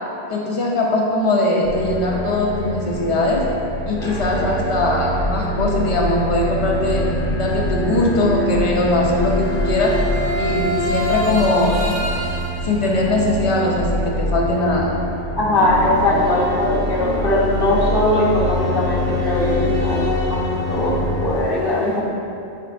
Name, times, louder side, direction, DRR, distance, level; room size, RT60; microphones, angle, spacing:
voice 1, 0.3-3.5 3.9-7.1 7.4-10.1 10.3-11.8 12.6-14.9, left 2 dB, 45° left, -1 dB, 0.4 m, -20 dB
sound 1, 1.6-21.3, left 1 dB, 5° left, 0.7 m, -24 dB
voice 2, 15.3-22.0, left 1 dB, 60° left, -6 dB, 1.0 m, -20 dB
4.5 x 3.9 x 2.5 m, 2.7 s
omnidirectional pair, 1.1 m